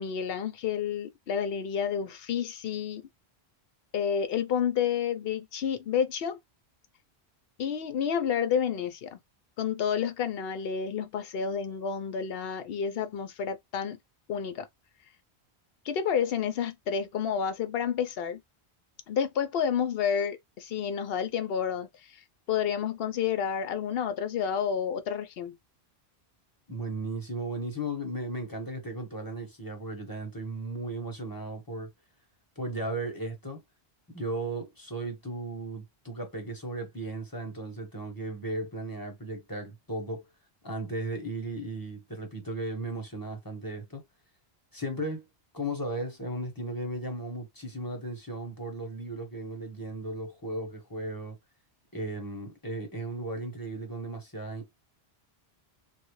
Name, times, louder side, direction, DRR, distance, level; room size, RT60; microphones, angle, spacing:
voice 1, 0.0-3.0 3.9-6.4 7.6-9.2 9.6-14.0 14.3-14.7 15.8-18.4 19.1-22.2 22.5-25.5, left 7 dB, 65° left, 0.8 m, -30 dB
voice 2, 26.7-31.9 32.6-33.6 34.1-40.2 40.6-44.0 44.7-45.3 45.5-51.4 51.9-54.8, right 2 dB, 20° left, 1.0 m, -36 dB
3.3 x 2.4 x 3.0 m
omnidirectional pair, 1.1 m